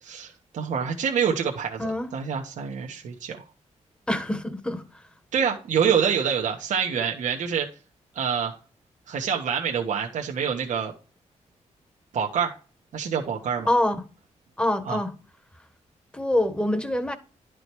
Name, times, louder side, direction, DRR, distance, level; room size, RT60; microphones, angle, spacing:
voice 1, 0.0-3.5 5.3-7.7 8.1-8.6 9.1-10.9 12.1-12.6 12.9-13.7 14.8-15.0, right 7 dB, 85° right, 1.3 m, -26 dB
voice 2, 4.1-5.0 13.7-14.0 14.6-15.1 16.1-17.2, left 1 dB, 10° left, 1.3 m, -25 dB
11.5 x 5.0 x 4.7 m
cardioid pair, 110°, 12 cm